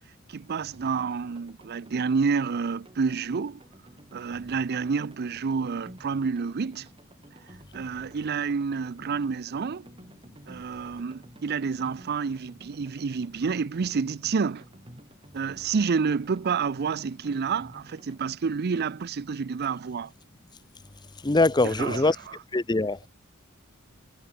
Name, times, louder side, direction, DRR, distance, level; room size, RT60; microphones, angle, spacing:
voice 1, 0.3-3.6 4.1-6.9 7.5-9.9 10.5-14.6 15.3-20.1 21.6-22.1, right 5 dB, 50° right, 0.5 m, -29 dB
sound 1, 0.7-18.4, right 1 dB, 25° right, 4.3 m, -52 dB
voice 2, 21.2-22.2 22.5-23.1, left 2 dB, 20° left, 0.7 m, -23 dB
head